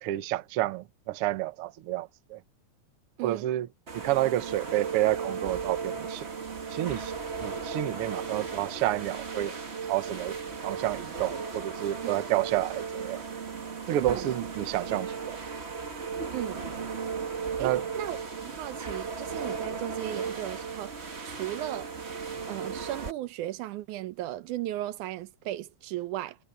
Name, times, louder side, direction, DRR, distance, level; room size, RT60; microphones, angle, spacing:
voice 1, 0.0-2.4 3.2-3.7 3.9-6.3 6.7-7.1 7.4-9.6 9.9-10.3 10.6-13.2 13.9-15.4 17.6-17.8, right 14 dB, 65° right, 1.6 m, -29 dB
sound 1, 3.9-23.1, right 5 dB, 30° right, 1.3 m, -36 dB
voice 2, 14.0-14.3 16.3-16.7 17.6-18.2 18.4-20.9 21.2-21.9 22.5-26.4, right 14 dB, 85° right, 2.3 m, -36 dB
omnidirectional pair, 3.4 m